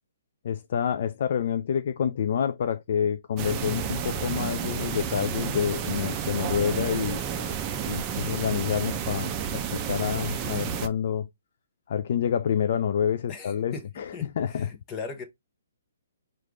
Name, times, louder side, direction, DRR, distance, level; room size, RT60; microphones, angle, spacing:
voice 1, 0.4-7.5 7.8-11.3 11.9-14.7, left 8 dB, 55° left, 0.3 m, -28 dB
sound 1, 3.4-10.9, right 7 dB, 25° right, 0.5 m, -31 dB
voice 2, 13.3-13.8 14.1-15.2, left 4 dB, 20° left, 0.9 m, -38 dB
4.7 x 2.5 x 3.4 m
hypercardioid pair, 150°, 0 cm